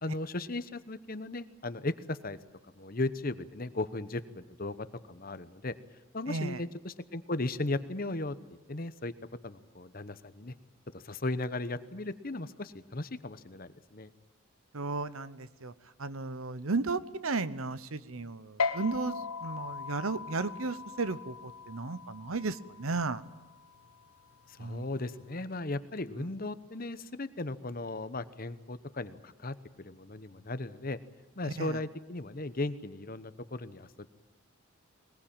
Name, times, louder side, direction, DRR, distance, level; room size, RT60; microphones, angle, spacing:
voice 1, 0.0-2.4 2.8-5.7 6.1-8.4 8.7-9.1 9.4-10.5 10.9-14.1 24.5-31.0 31.4-34.1, left 2 dB, 40° left, 13 dB, 1.0 m, -36 dB
voice 2, 6.3-6.6 14.7-15.7 16.0-23.2 24.6-24.9 26.2-26.3 31.4-31.8, right 3 dB, 75° right, 15 dB, 1.0 m, -34 dB
sound 1, 18.6-25.4, left 5 dB, 90° left, 1.3 m, -39 dB
21.5 x 21.0 x 8.9 m, 1.1 s
head